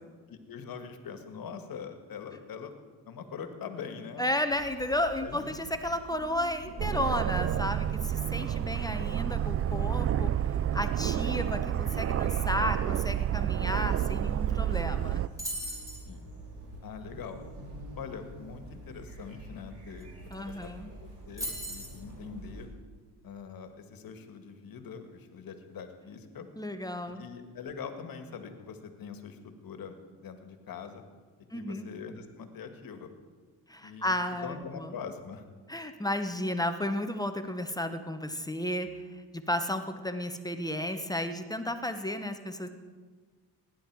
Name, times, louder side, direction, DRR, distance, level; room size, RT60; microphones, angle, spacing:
voice 1, 0.3-2.7 3.0-4.2 5.2-5.5 8.4-9.0 16.0-16.3 16.8-17.4 17.9-20.1 20.4-22.7 23.2-26.5 27.2-31.0 31.5-33.1 33.8-35.4, left 6 dB, 60° left, 7 dB, 1.7 m, -43 dB
voice 2, 4.2-10.3 10.7-15.2 20.3-20.9 26.6-27.2 31.5-31.9 33.7-34.9 35.7-39.0 39.3-42.7, left 1 dB, 10° left, 7 dB, 1.0 m, -33 dB
sound 1, 4.5-22.7, right 1 dB, 90° right, 3.2 m, -47 dB
Aircraft, 6.8-15.3, right 11 dB, 35° right, 0.4 m, -29 dB
sound 2, 15.4-16.0 20.0-20.1 20.3-20.6 21.4-22.0, equal, 10° right, 4.5 m, -37 dB
18.0 x 10.0 x 4.7 m, 1.5 s
cardioid pair, 80°, 39 cm